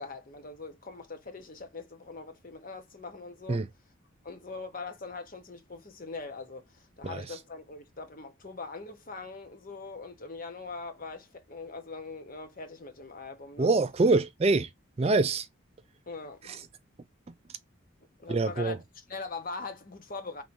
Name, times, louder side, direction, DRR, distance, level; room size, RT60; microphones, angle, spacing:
voice 1, 0.0-3.6 4.2-13.7 16.1-16.6 18.2-20.4, left 4 dB, 40° left, 0.9 m, -42 dB
voice 2, 13.6-14.7 15.0-15.5 18.3-18.8, right 3 dB, 30° right, 0.3 m, -24 dB
3.2 x 2.7 x 4.4 m
head